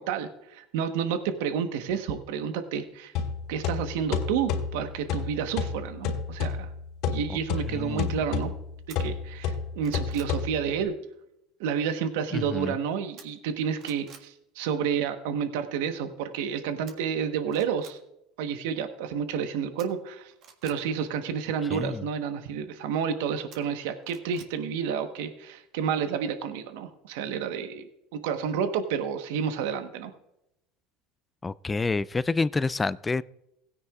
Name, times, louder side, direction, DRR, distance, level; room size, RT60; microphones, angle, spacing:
voice 1, 0.0-3.1 3.5-6.7 7.1-8.5 8.9-10.9 11.6-18.0 18.4-20.3 20.6-27.9 28.1-30.1, right 7 dB, 80° right, 8 dB, 1.1 m, -30 dB
sound 1, 3.1-10.9, left 6 dB, 65° left, 3.3 m, -31 dB
voice 2, 7.7-8.2 12.3-12.7 21.7-22.0 31.4-33.2, left 3 dB, 15° left, 19 dB, 0.3 m, -28 dB
sound 2, 8.9-9.0 9.5-10.4 13.2-13.5 13.8-14.3 16.9-17.0 17.5-18.0 19.8-20.8 23.5-24.5 24.9-25.0, right 7 dB, 55° right, 1.7 m, -50 dB
17.0 x 9.6 x 2.4 m, 0.82 s
supercardioid pair, 100°, 0 cm